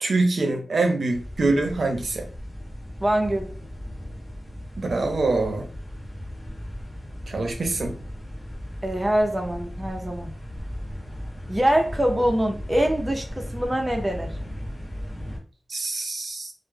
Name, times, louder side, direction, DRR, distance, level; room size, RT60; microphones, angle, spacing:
voice 1, 0.0-2.3 4.8-5.7 7.3-7.9 15.7-16.5, right 3 dB, 65° right, 4 dB, 0.6 m, -24 dB
sound 1, 1.1-15.4, equal, 25° left, 1.0 m, -36 dB
voice 2, 3.0-3.5 8.8-10.3 11.5-14.3, right 1 dB, 20° right, 3 dB, 0.5 m, -24 dB
2.1 x 2.0 x 3.2 m, 0.40 s
wide cardioid pair, 100°, 0 cm